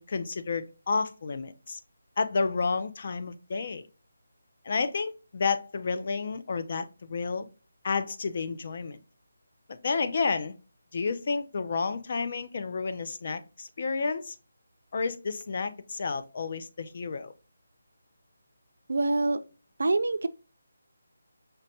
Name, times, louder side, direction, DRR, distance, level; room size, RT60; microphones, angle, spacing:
voice 1, 0.0-1.8 2.2-3.9 4.6-7.5 7.8-9.0 9.7-10.6 10.9-14.4 14.9-17.3, left 4 dB, 40° left, 0.3 m, -31 dB
voice 2, 18.9-19.4 19.8-20.3, right 2 dB, 70° right, 0.4 m, -25 dB
5.1 x 2.1 x 2.7 m
figure-of-eight pair, 175°, 0 cm